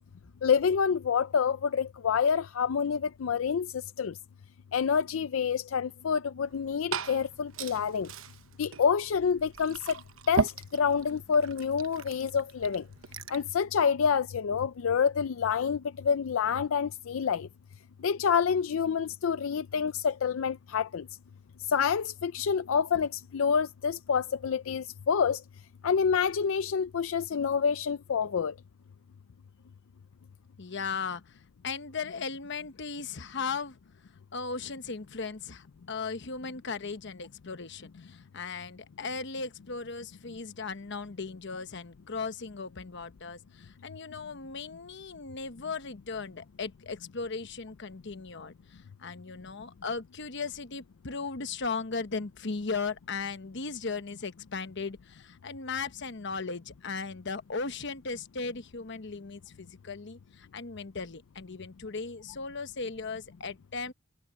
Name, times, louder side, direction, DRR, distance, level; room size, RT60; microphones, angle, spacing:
voice 1, 0.4-3.7 4.0-4.1 4.7-8.1 8.6-10.0 10.3-12.8 13.3-17.5 18.0-21.1 21.7-25.4 25.8-28.5, left 6 dB, 85° left, 0.5 m, -27 dB
Glass / Fill (with liquid), 6.4-13.5, right 4 dB, 85° right, 1.0 m, -37 dB
voice 2, 30.6-33.8 34.3-63.9, left 4 dB, 60° left, 1.1 m, -37 dB
head